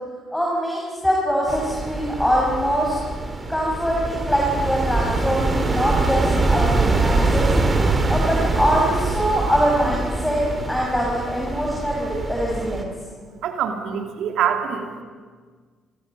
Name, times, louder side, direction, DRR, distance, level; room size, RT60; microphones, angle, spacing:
voice 1, 0.3-3.0 3.5-7.5 8.1-12.9, equal, 10° left, -3 dB, 6.3 m, -23 dB
sound 1, 1.5-12.8, right 3 dB, 30° right, 3.2 m, -23 dB
voice 2, 13.4-15.0, right 8 dB, 60° right, 5 dB, 2.7 m, -25 dB
26.5 x 23.5 x 5.5 m, 1.5 s
figure-of-eight pair, 45°, 0 cm